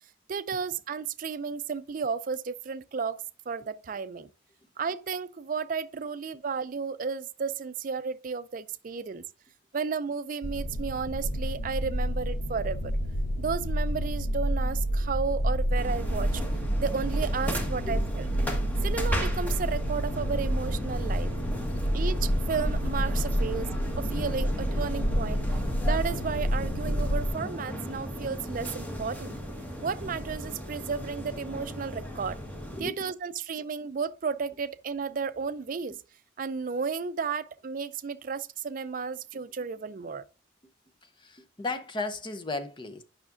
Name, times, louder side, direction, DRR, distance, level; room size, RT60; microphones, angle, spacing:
voice 1, 0.3-4.3 4.8-9.2 9.7-12.9 13.4-16.4 16.8-18.2 18.8-21.3 21.9-25.4 25.8-29.3 29.8-32.4 32.8-36.0 36.4-40.2, right 5 dB, 45° right, 0.4 m, -33 dB
sound 1, 10.4-27.3, equal, 70° left, 0.9 m, -29 dB
sound 2, 15.8-32.8, equal, 10° left, 1.2 m, -36 dB
voice 2, 32.7-33.1 41.2-43.0, left 2 dB, 25° left, 0.7 m, -35 dB
9.5 x 5.7 x 2.5 m
head